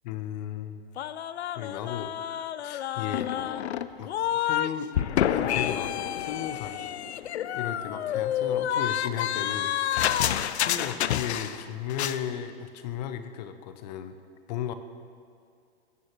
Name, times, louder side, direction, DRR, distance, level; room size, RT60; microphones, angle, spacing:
voice 1, 0.0-0.8 1.6-2.1 2.6-3.5 4.0-6.8 7.6-9.7 10.6-14.2 14.5-14.7, left 9 dB, 40° left, 10 dB, 0.6 m, -35 dB
sound 1, 1.0-4.7 4.9-11.6 11.9-12.2, left 10 dB, 80° left, 0.5 m, -29 dB
16.5 x 6.3 x 3.0 m, 2.3 s
hypercardioid pair, 130°, 33 cm